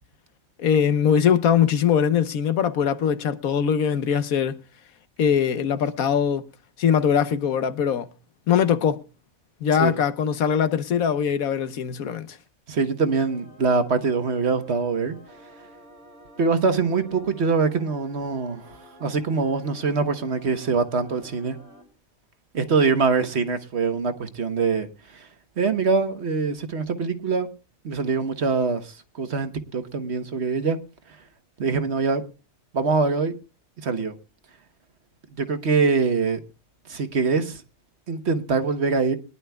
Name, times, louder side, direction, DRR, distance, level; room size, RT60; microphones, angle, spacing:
voice 1, 0.6-4.6 5.2-6.5 6.8-8.1 8.5-9.0 9.6-12.4, left 8 dB, 90° left, 1.3 m, -21 dB
voice 2, 12.7-15.2 16.4-21.6 22.5-25.3 25.6-27.5 27.8-30.8 31.6-32.2 32.7-33.3 33.8-34.1 35.4-36.4 36.9-37.6 38.1-39.2, right 4 dB, 55° right, 1.3 m, -24 dB
sound 1, 13.1-21.8, equal, 80° right, 3.5 m, -49 dB
22.5 x 11.0 x 2.3 m
omnidirectional pair, 1.4 m